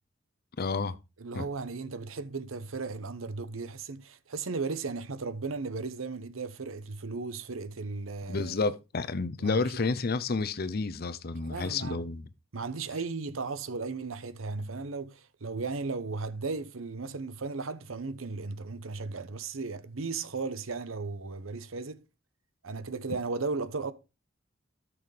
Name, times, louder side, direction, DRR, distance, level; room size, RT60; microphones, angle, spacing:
voice 1, 0.6-1.0 1.3-1.4 8.3-12.2, left 4 dB, 50° left, 0.6 m, -30 dB
voice 2, 1.2-8.5 9.4-9.9 11.4-12.0 12.5-22.0 22.6-23.9, right 4 dB, 85° right, 0.8 m, -36 dB
13.0 x 6.2 x 3.3 m
head